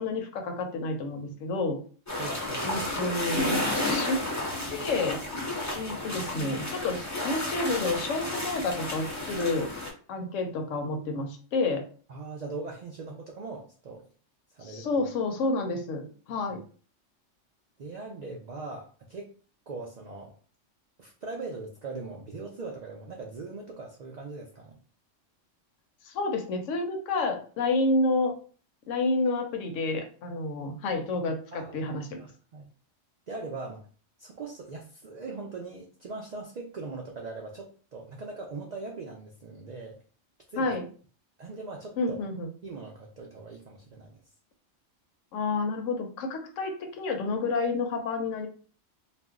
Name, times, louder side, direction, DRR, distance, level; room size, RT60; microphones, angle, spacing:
voice 1, 0.0-1.8 2.6-4.3 4.7-5.2 5.8-9.7 10.1-11.9 14.6-16.6 26.0-28.3 28.9-32.2 40.6-40.8 42.0-42.5 45.3-48.5, left 3 dB, 80° left, 4 dB, 1.0 m, -29 dB
sound 1, 2.1-9.9, left 1 dB, 20° left, 0.5 m, -32 dB
voice 2, 2.2-2.8 12.1-14.1 14.5-15.0 17.8-19.3 19.7-20.3 21.0-24.8 31.5-32.7 33.3-33.8 34.2-40.0 40.5-40.7 41.4-42.2 42.6-44.2, right 3 dB, 75° right, 0 dB, 0.4 m, -40 dB
2.5 x 2.1 x 3.5 m, 0.41 s
omnidirectional pair, 1.3 m